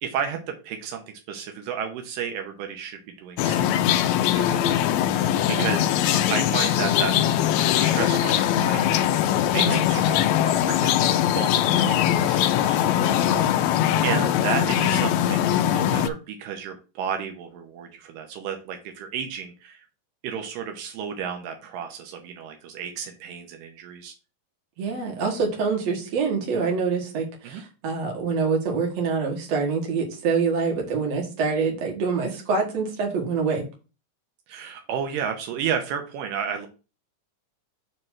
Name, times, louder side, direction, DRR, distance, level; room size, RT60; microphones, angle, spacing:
voice 1, 0.0-4.8 5.5-5.9 6.3-7.2 7.8-9.1 9.4-19.9 20.2-24.1 27.4-27.6 34.5-36.7, right 7 dB, 85° right, 4 dB, 2.5 m, -33 dB
sound 1, 3.4-16.1, left 11 dB, 85° left, 1.6 m, -21 dB
voice 2, 5.4-5.7 9.5-9.8 14.0-14.2 24.8-33.6, right 5 dB, 55° right, 1 dB, 2.8 m, -26 dB
7.3 x 3.2 x 6.0 m, 0.32 s
omnidirectional pair, 3.8 m